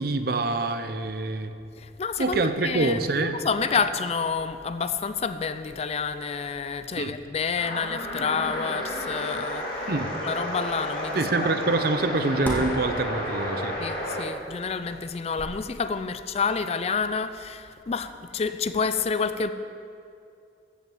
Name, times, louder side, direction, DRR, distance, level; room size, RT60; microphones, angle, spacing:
voice 1, 0.0-1.5 2.2-3.4 7.0-7.2 9.9-10.1 11.2-13.7, right 3 dB, 55° right, 9 dB, 0.7 m, -26 dB
voice 2, 1.8-9.7 10.2-11.5 13.8-19.5, left 5 dB, 35° left, 11 dB, 0.4 m, -29 dB
sound 1, 7.6-14.3, left 1 dB, 55° left, 2.3 m, -32 dB
sound 2, 8.1-16.0, equal, 10° left, 1.8 m, -41 dB
14.5 x 5.6 x 7.7 m, 2.5 s
head